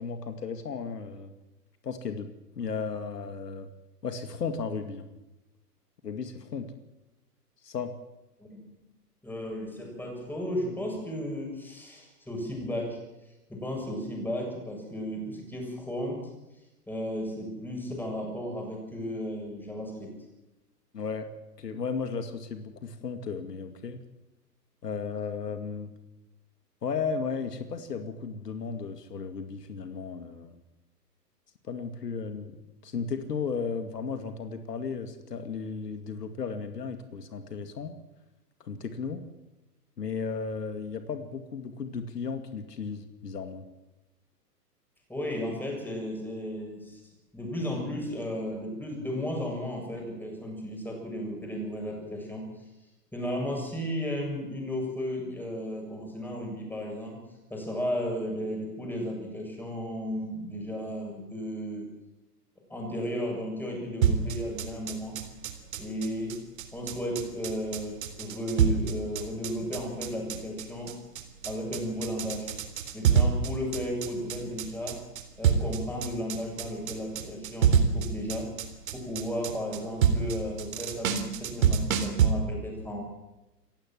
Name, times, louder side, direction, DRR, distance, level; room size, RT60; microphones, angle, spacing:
voice 1, 0.0-1.3 1.8-2.3 2.6-3.7 4.0-5.1 6.0-6.7 7.6-7.9 20.9-21.3 21.6-24.0 24.8-25.9 26.8-30.5 31.7-32.6 32.8-37.9 38.6-39.2 40.0-43.6, left 5 dB, 75° left, 8 dB, 2.3 m, -34 dB
voice 2, 9.2-13.0 13.5-16.3 16.9-20.1 45.1-47.0 47.3-52.7 53.1-57.2 57.5-61.9 62.7-65.3 65.8-66.4 66.7-71.0 71.4-72.5 72.9-75.0 75.4-78.5 78.9-83.0, equal, 5° left, 0 dB, 7.3 m, -34 dB
sound 1, 64.0-82.3, right 7 dB, 55° right, 3.7 m, -27 dB
28.5 x 15.5 x 7.6 m, 1.0 s
hypercardioid pair, 120°, 49 cm